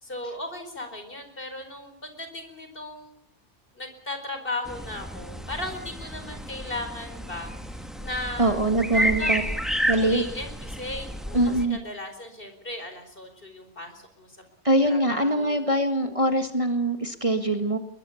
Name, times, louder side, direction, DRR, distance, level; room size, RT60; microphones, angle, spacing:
voice 1, 0.0-3.2 3.7-8.6 8.9-9.7 9.9-14.4 14.8-15.8, left 2 dB, 50° left, 7 dB, 4.7 m, -37 dB
sound 1, 4.7-11.6, equal, ahead, 2.1 m, -31 dB
voice 2, 8.4-9.4 9.9-10.2 11.3-11.8 14.6-17.8, right 1 dB, 30° right, 7 dB, 1.8 m, -23 dB
22.5 x 21.5 x 7.1 m, 0.75 s
omnidirectional pair, 1.2 m